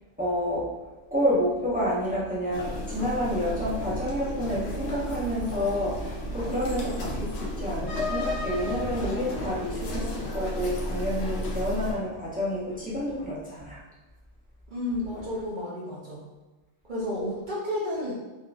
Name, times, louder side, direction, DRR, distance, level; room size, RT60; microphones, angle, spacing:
voice 1, 0.2-0.7 1.1-13.8, equal, 10° right, -8 dB, 0.6 m, -29 dB
sound 1, 2.5-11.9, left 1 dB, 65° left, 0.8 m, -33 dB
voice 2, 14.7-16.2 16.8-18.2, left 1 dB, 50° right, -5 dB, 0.6 m, -31 dB
3.6 x 2.5 x 2.3 m, 1.2 s
omnidirectional pair, 1.4 m